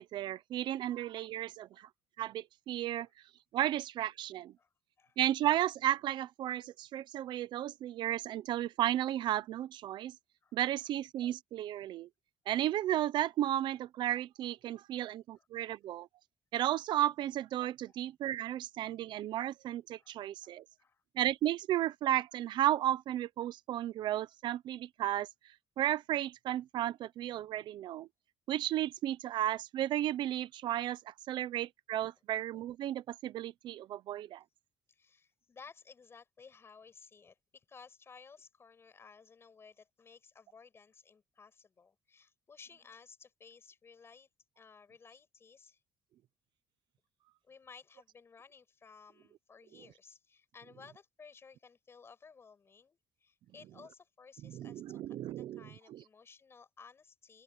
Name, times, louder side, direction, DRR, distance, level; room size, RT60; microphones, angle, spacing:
voice 1, 0.0-1.9 2.2-3.1 3.5-4.5 5.2-10.1 10.5-12.1 12.5-16.1 16.5-20.6 21.1-28.1 28.5-34.4 54.4-55.6 55.9-56.0, right 13 dB, 70° right, 0.7 m, -34 dB
voice 2, 20.4-21.0 34.9-44.3 44.6-45.8 47.4-57.4, left 5 dB, 30° left, 7.1 m, -57 dB
open air
cardioid pair, 130°, 8 cm